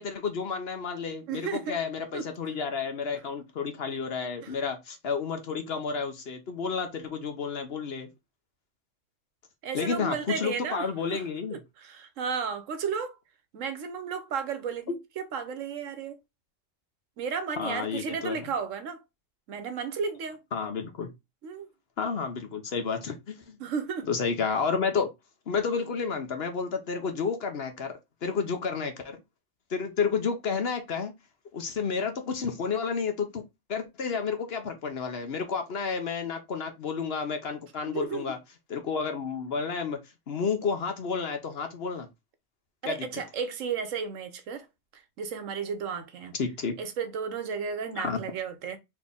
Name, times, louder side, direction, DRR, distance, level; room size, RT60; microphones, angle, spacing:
voice 1, 0.0-8.1 9.7-11.6 17.6-18.5 20.5-21.1 22.0-23.6 24.1-25.1 25.5-29.2 29.7-31.1 31.5-33.4 33.7-38.4 38.7-40.0 40.3-42.1 42.8-43.2 46.4-46.7 48.0-48.2, left 5 dB, 55° left, 1.0 m, -31 dB
voice 2, 1.3-1.8 2.1-2.3 4.4-4.5 9.6-11.2 11.5-13.2 13.5-16.2 17.2-19.0 19.5-20.4 21.4-21.7 23.6-24.1 37.9-38.3 42.8-44.7 44.9-46.3 46.8-48.8, right 6 dB, 75° right, 1.1 m, -33 dB
4.2 x 3.0 x 3.5 m
omnidirectional pair, 1.4 m